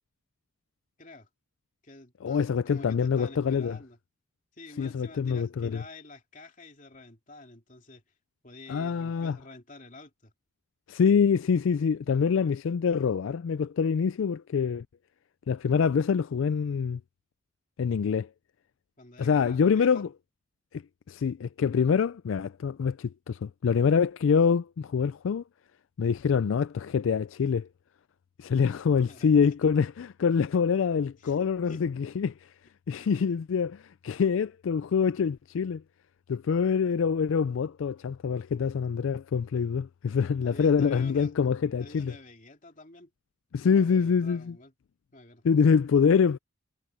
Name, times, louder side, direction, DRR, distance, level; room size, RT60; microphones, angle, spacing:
voice 1, 1.0-1.3 1.8-4.0 4.5-8.0 8.4-10.3 19.0-20.0 29.0-29.5 31.2-31.8 32.9-33.2 40.3-41.3 41.8-43.1 43.6-44.7 45.1-45.4, left 2 dB, 40° left, 3.0 m, -49 dB
voice 2, 2.2-3.8 4.8-5.8 8.7-9.4 10.9-14.8 15.5-17.0 17.8-18.3 19.2-20.1 20.7-20.8 21.1-25.4 26.0-27.7 28.4-32.3 32.9-35.8 36.3-42.1 43.5-44.6 45.4-46.4, left 6 dB, 75° left, 0.4 m, -25 dB
head